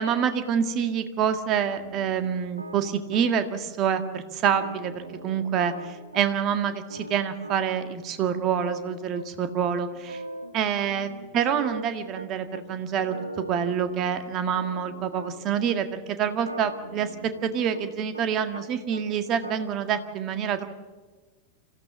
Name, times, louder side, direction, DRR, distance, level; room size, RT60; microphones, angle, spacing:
voice 1, 0.0-10.2 10.5-13.1 13.5-17.2 17.4-20.7, right 8 dB, 35° right, 9 dB, 1.8 m, -27 dB
sound 1, 1.5-3.6 3.9-4.0 4.3-6.6 6.9-9.2 9.5-9.6 9.9-10.5 10.8-12.6 12.9-15.6 16.3-18.6 18.9-19.5, right 2 dB, 80° right, 1.4 m, -40 dB
26.0 x 15.0 x 7.2 m, 1.3 s
figure-of-eight pair, 90°, 0 cm